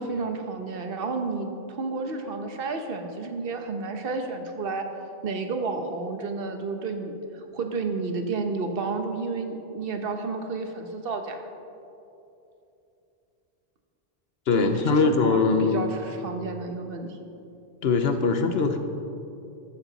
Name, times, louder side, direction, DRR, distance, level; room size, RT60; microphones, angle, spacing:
voice 1, 0.0-4.9 5.2-11.4 14.5-17.2, right 4 dB, 60° right, 5 dB, 1.3 m, -31 dB
voice 2, 14.5-15.9 17.8-18.8, left 4 dB, 70° left, 7 dB, 1.0 m, -22 dB
15.0 x 12.5 x 4.1 m, 2.8 s
omnidirectional pair, 1.1 m